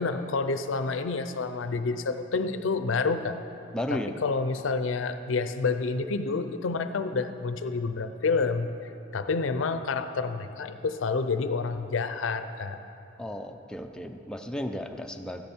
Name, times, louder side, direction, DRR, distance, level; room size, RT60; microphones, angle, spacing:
voice 1, 0.0-3.4 3.9-8.7 9.1-12.8, left 4 dB, 90° left, 10 dB, 0.5 m, -28 dB
voice 2, 3.7-4.1 13.2-15.4, equal, 5° left, 4 dB, 0.5 m, -34 dB
14.0 x 10.5 x 4.4 m, 2.8 s
head